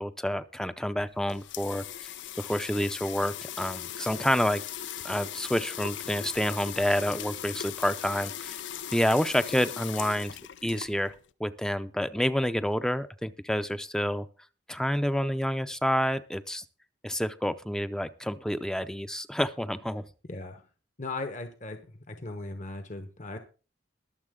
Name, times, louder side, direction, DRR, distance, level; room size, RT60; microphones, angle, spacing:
voice 1, 0.0-1.8 2.4-4.6 5.0-8.6 8.9-10.3 10.6-11.1 11.4-14.3 14.7-16.6 17.0-20.0, equal, 5° left, 12 dB, 0.6 m, -28 dB
sound 1, 1.0-11.3, left 10 dB, 80° left, 0.7 m, -39 dB
voice 2, 20.3-20.6 21.0-21.8 22.1-23.4, left 2 dB, 40° left, 7 dB, 1.1 m, -37 dB
22.0 x 7.3 x 3.7 m, 0.35 s
head